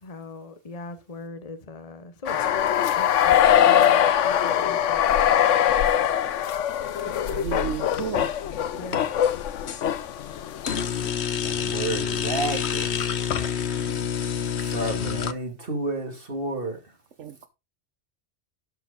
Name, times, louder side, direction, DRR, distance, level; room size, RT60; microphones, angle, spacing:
voice 1, 0.0-2.5 3.0-5.1 5.7-5.8 8.8-9.0, left 2 dB, 30° left, 1.1 m, -39 dB
sound 1, 2.3-10.7, left 10 dB, 85° left, 1.1 m, -22 dB
voice 2, 7.1-8.4 17.2-17.5, right 8 dB, 80° right, 1.2 m, -33 dB
sound 2, 7.9-8.4 8.8-9.8 10.6-15.3, left 7 dB, 65° left, 1.2 m, -28 dB
voice 3, 11.4-13.1 14.6-16.8, right 2 dB, 50° right, 2.7 m, -31 dB
12.0 x 4.9 x 5.1 m
omnidirectional pair, 1.2 m